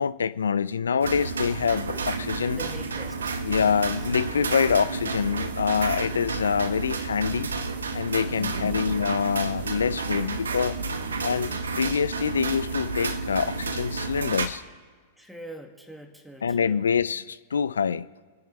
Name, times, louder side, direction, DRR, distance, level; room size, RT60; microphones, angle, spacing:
voice 1, 0.0-2.6 3.4-7.5 7.9-10.8 11.2-14.6 16.4-18.1, left 6 dB, 85° left, 0.4 m, -25 dB
sound 1, 1.0-14.5, right 4 dB, 85° right, 1.1 m, -31 dB
voice 2, 2.5-3.8 8.3-8.8 15.2-16.9, equal, 5° right, 2.0 m, -43 dB
27.0 x 10.0 x 3.3 m
hypercardioid pair, 105°, 0 cm